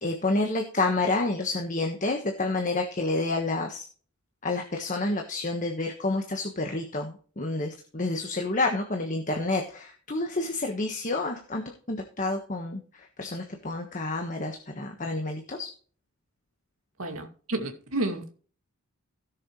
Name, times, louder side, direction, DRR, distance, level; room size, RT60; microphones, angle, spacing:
voice 1, 0.0-3.8 4.4-11.6 11.9-15.7, left 2 dB, 35° left, 1.3 m, -29 dB
voice 2, 17.0-18.3, right 2 dB, 70° right, 2.3 m, -31 dB
17.0 x 6.9 x 3.1 m
head